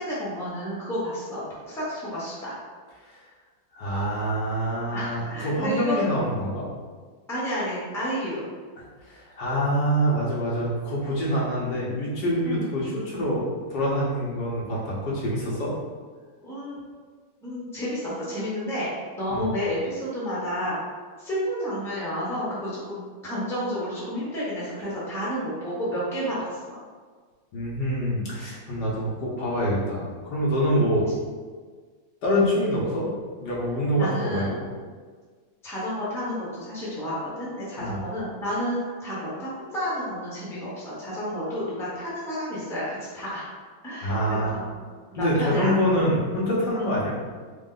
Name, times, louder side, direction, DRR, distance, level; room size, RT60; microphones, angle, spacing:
voice 1, 0.0-2.6 4.9-6.1 7.3-8.5 12.4-12.7 16.4-16.8 17.4-20.8 21.2-26.8 30.7-30.8 34.0-34.5 35.6-43.6 43.8-44.6 45.1-45.7 46.8-47.0, equal, 5° left, -8 dB, 0.5 m, -31 dB
voice 2, 3.7-6.7 9.0-15.7 19.3-19.4 27.5-31.1 32.2-33.1 33.4-34.6 37.8-38.0 44.0-44.5 45.2-47.1, equal, 65° left, -5 dB, 1.5 m, -25 dB
4.0 x 2.1 x 3.7 m, 1.5 s
omnidirectional pair, 2.1 m